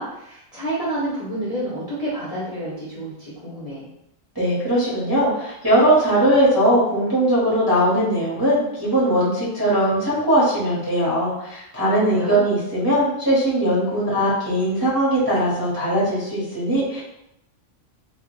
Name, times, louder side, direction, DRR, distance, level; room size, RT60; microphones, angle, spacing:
voice 1, 0.0-3.9 12.1-12.4, right 1 dB, 35° left, -10 dB, 0.7 m, -29 dB
voice 2, 4.3-17.0, right 1 dB, 20° right, -9 dB, 0.9 m, -20 dB
3.0 x 2.3 x 3.1 m, 0.82 s
omnidirectional pair, 1.4 m